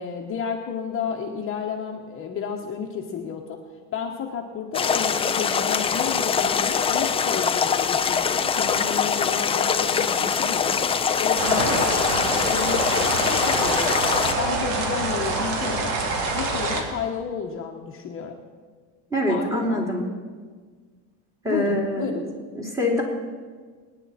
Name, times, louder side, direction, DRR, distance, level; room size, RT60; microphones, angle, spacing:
voice 1, 0.0-3.6 3.9-15.9 16.3-18.4 19.3-19.8 21.4-22.3, left 6 dB, 35° left, 1 dB, 1.2 m, -32 dB
sound 1, 4.7-14.3, left 6 dB, 15° left, 0.4 m, -23 dB
sound 2, 11.4-16.8, right 3 dB, 65° right, 2.5 m, -26 dB
voice 2, 19.1-20.0 21.4-22.2 22.5-23.0, left 1 dB, 10° right, -1 dB, 2.8 m, -24 dB
24.5 x 9.9 x 4.3 m, 1.5 s
cardioid pair, 145°, 39 cm